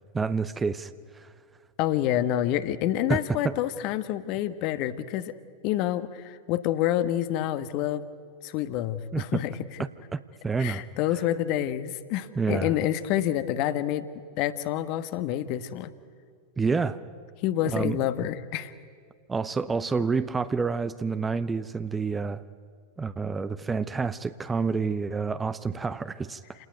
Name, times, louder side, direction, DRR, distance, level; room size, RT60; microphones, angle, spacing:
voice 1, 0.1-1.3 3.1-3.6 9.1-9.4 9.8-10.8 12.4-12.7 16.6-17.0 17.7-18.1 19.3-22.4 23.0-26.4, right 4 dB, 15° right, 14 dB, 0.8 m, -28 dB
voice 2, 1.8-5.3 5.6-8.0 8.4-9.5 10.6-14.1 14.4-15.9 17.4-18.7, left 12 dB, 45° left, 12 dB, 1.2 m, -28 dB
28.5 x 19.0 x 9.4 m, 2.1 s
figure-of-eight pair, 90°, 0 cm